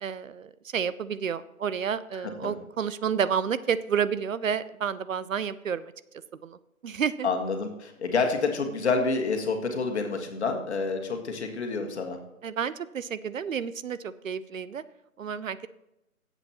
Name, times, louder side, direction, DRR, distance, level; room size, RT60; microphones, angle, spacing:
voice 1, 0.0-5.9 6.4-6.6 6.8-7.3 12.4-14.8 15.2-15.7, right 7 dB, 65° right, 16 dB, 0.6 m, -30 dB
voice 2, 7.2-12.2, left 4 dB, 50° left, 4 dB, 1.7 m, -28 dB
16.0 x 8.1 x 3.0 m, 0.88 s
figure-of-eight pair, 155°, 43 cm